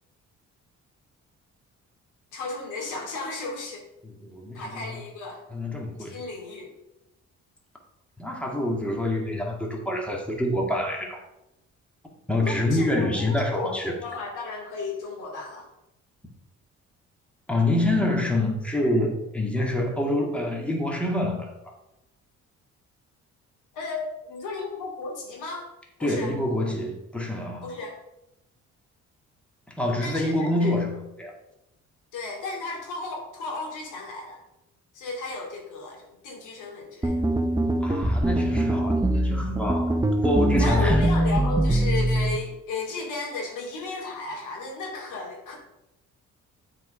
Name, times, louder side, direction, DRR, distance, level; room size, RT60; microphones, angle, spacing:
voice 1, 2.3-3.9 4.5-5.4 6.0-6.7 12.4-15.7 23.7-25.7 26.0-26.3 27.6-28.0 30.0-30.7 32.1-34.4 34.9-37.2 40.6-45.6, left 3 dB, 85° left, 0 dB, 2.6 m, -34 dB
voice 2, 4.0-5.0 5.5-6.2 8.2-11.2 12.3-13.9 17.5-21.7 26.0-27.7 29.7-31.3 37.8-39.9 40.2-41.1, left 1 dB, 5° left, 0 dB, 2.0 m, -26 dB
sound 1, 37.0-42.4, right 1 dB, 10° right, 0.7 m, -23 dB
7.8 x 4.8 x 5.5 m, 0.88 s
cardioid pair, 90°, 30 cm